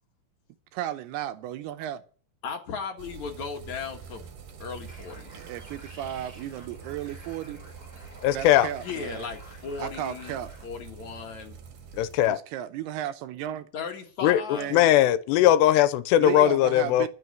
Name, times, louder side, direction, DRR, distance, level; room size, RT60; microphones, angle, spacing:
voice 1, 0.7-2.0 5.3-7.6 8.3-9.3 9.8-10.5 12.2-13.7 14.5-14.9 16.2-17.1, right 11 dB, 80° right, 2.7 m, -34 dB
voice 2, 2.4-4.2 4.6-5.4 8.6-10.4 10.6-11.6 13.7-14.7, left 5 dB, 55° left, 2.5 m, -36 dB
sound 1, 3.0-12.3, right 6 dB, 60° right, 2.9 m, -46 dB
sound 2, 4.8-10.7, equal, 10° right, 3.4 m, -51 dB
voice 3, 8.2-8.7 12.2-12.4 14.2-14.4 14.7-17.1, left 12 dB, 85° left, 2.9 m, -19 dB
12.0 x 6.4 x 9.6 m
omnidirectional pair, 4.8 m